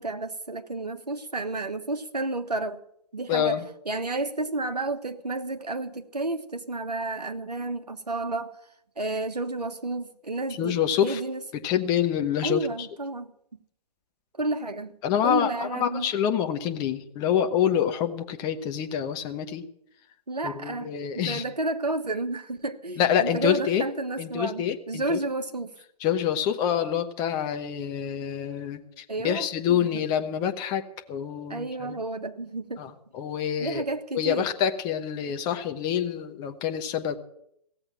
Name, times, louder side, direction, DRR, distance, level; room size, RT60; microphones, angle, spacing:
voice 1, 0.0-2.8 3.1-3.6 3.9-8.5 9.0-11.4 12.4-13.3 14.4-14.9 15.2-16.1 20.3-25.7 29.1-29.9 31.5-32.8 33.6-34.5, right 2 dB, 80° right, 1.4 m, -31 dB
voice 2, 3.3-3.6 10.6-11.2 11.5-12.9 15.0-19.6 20.4-21.4 23.0-23.8 24.2-25.2 26.0-32.0 32.8-33.8 34.1-37.2, left 9 dB, 20° left, 1.1 m, -27 dB
16.5 x 7.9 x 9.0 m
figure-of-eight pair, 130°, 20 cm